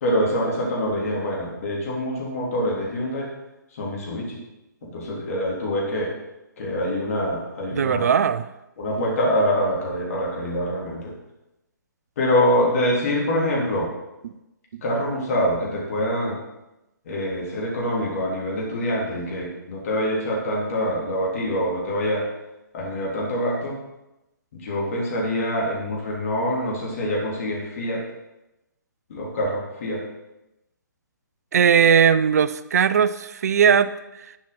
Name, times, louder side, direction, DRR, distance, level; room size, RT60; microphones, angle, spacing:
voice 1, 0.0-3.3 3.7-4.4 4.8-6.2 6.6-8.1 8.8-11.1 12.2-13.9 14.8-16.4 17.1-22.3 22.7-23.8 24.5-28.0 29.1-30.0, equal, 45° left, -3 dB, 3.3 m, -25 dB
voice 2, 7.7-8.4 14.2-14.3 31.5-33.9, right 7 dB, 55° right, 14 dB, 0.6 m, -18 dB
10.0 x 7.3 x 5.8 m, 0.94 s
figure-of-eight pair, 130°, 10 cm